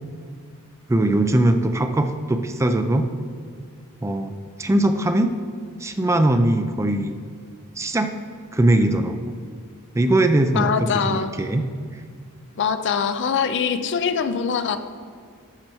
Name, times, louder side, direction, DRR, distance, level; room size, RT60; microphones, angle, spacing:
voice 1, 0.9-3.1 4.0-5.4 5.8-7.2 7.8-8.2 8.5-9.2 9.9-11.7, right 1 dB, 15° right, 7 dB, 0.3 m, -20 dB
voice 2, 10.6-11.3 12.6-14.8, left 6 dB, 55° left, 10 dB, 0.5 m, -23 dB
11.5 x 6.6 x 3.0 m, 2.1 s
head